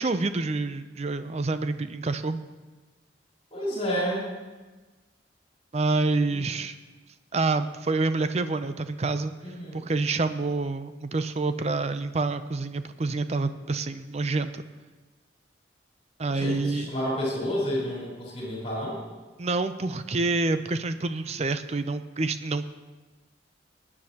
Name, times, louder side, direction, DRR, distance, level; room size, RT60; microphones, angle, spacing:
voice 1, 0.0-2.4 5.7-6.8 7.3-9.3 9.7-14.6 16.2-16.9 19.4-22.7, right 3 dB, 35° right, 11 dB, 0.5 m, -27 dB
voice 2, 3.5-4.3 6.3-6.4 9.4-9.9 16.3-19.0, equal, 35° left, -5 dB, 4.5 m, -30 dB
19.0 x 9.8 x 2.9 m, 1.2 s
head